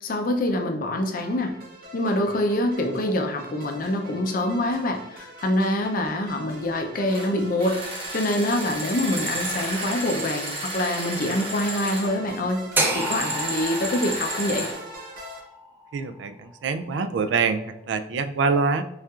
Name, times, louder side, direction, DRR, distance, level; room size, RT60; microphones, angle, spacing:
voice 1, 0.0-1.5 1.9-12.6 12.9-14.7, left 1 dB, 50° left, 4 dB, 0.5 m, -25 dB
sound 1, 1.2-15.4, equal, 50° right, 1.2 m, -43 dB
sound 2, 7.1-7.3 7.6-12.1 12.9-14.8, right 2 dB, 30° right, 0.8 m, -32 dB
sound 3, 12.8-16.9, right 1 dB, 10° right, 0.4 m, -30 dB
voice 2, 15.9-18.8, right 4 dB, 75° right, 10 dB, 0.3 m, -25 dB
5.5 x 2.4 x 2.3 m, 0.84 s
head